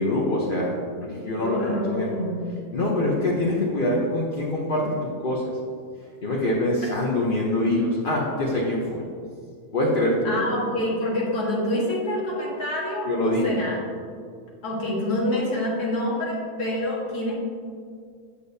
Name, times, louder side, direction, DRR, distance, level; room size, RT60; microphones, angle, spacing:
voice 1, 0.0-2.1 2.7-5.5 6.2-9.1 9.7-10.4 13.1-13.6, left 1 dB, 40° left, -4 dB, 0.8 m, -24 dB
voice 2, 1.4-2.5 10.2-13.8 14.6-17.3, left 1 dB, 85° left, -4 dB, 2.1 m, -27 dB
8.3 x 6.7 x 2.7 m, 2.2 s
omnidirectional pair, 1.6 m